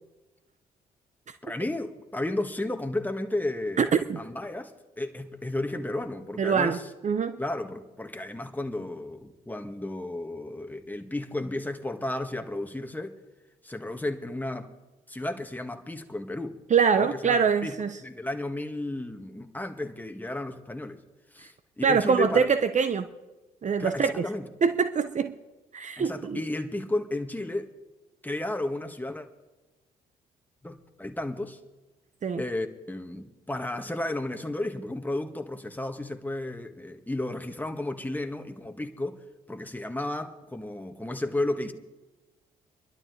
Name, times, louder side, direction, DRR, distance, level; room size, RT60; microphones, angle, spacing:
voice 1, 1.4-6.9 7.4-13.2 13.6-14.7 15.1-16.6 16.9-17.7 18.0-21.0 21.3-22.5 23.8-24.4 26.0-27.7 28.2-29.3 30.6-31.6 32.4-39.2 39.5-41.7, left 1 dB, 10° left, 1.7 m, -33 dB
voice 2, 3.8-4.2 6.4-7.4 16.7-18.0 21.8-23.1 23.6-24.3 24.6-25.4 25.7-26.4 32.2-32.4, right 6 dB, 40° right, 0.8 m, -24 dB
25.0 x 12.0 x 3.3 m
hypercardioid pair, 45°, 19 cm